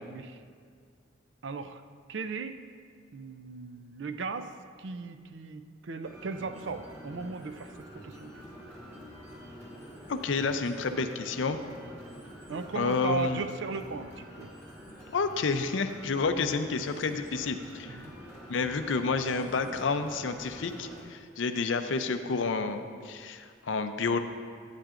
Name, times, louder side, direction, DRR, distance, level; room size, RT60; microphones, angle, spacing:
voice 1, 0.1-0.4 1.4-1.8 2.1-2.6 3.1-4.5 4.8-8.4 12.5-14.5 17.9-18.1, right 4 dB, 75° right, 9 dB, 0.5 m, -37 dB
sound 1, 6.0-21.0, equal, 15° right, 1.9 m, -47 dB
voice 2, 10.1-11.6 12.8-13.4 15.1-18.0 18.5-24.2, left 4 dB, 85° left, 8 dB, 0.5 m, -30 dB
11.5 x 9.1 x 2.5 m, 2.1 s
head